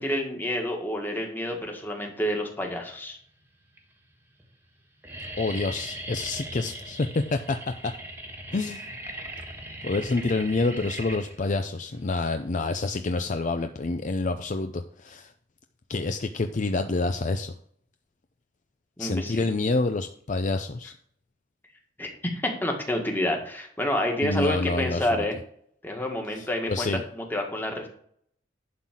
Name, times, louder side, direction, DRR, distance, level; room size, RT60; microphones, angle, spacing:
voice 1, 0.0-3.2 19.0-19.5 22.0-25.3 25.8-26.9 27.1-27.9, left 1 dB, 10° left, 2 dB, 1.7 m, -29 dB
sound 1, 2.4-3.0 3.7-3.8 4.1-4.4 4.7-13.6, right 1 dB, 10° right, 1.4 m, -40 dB
voice 2, 5.4-7.9 8.5-8.8 9.8-15.3 15.9-17.5 19.0-20.9 24.2-25.2 26.3-27.0, left 3 dB, 45° left, 8 dB, 0.5 m, -28 dB
11.5 x 4.0 x 7.5 m, 0.64 s
head